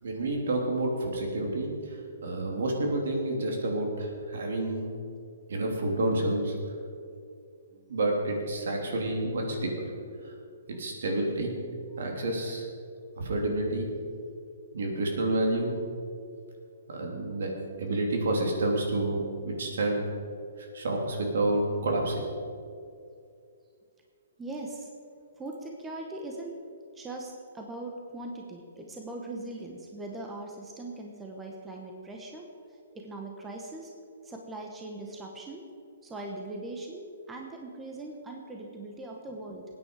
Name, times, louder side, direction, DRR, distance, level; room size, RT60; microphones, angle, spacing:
voice 1, 0.0-4.9 5.5-6.5 7.9-9.9 10.2-10.3 10.7-11.5 12.0-12.6 13.2-13.9 14.7-15.7 16.9-17.5 17.8-20.0 20.6-22.2, right 2 dB, 70° right, 0 dB, 3.2 m, -29 dB
voice 2, 24.4-24.9 25.4-26.6 26.9-32.5 32.9-33.9 34.2-35.6 36.0-39.6, right 2 dB, 10° right, 0 dB, 1.0 m, -40 dB
20.0 x 9.3 x 4.8 m, 2.4 s
hypercardioid pair, 165°, 0 cm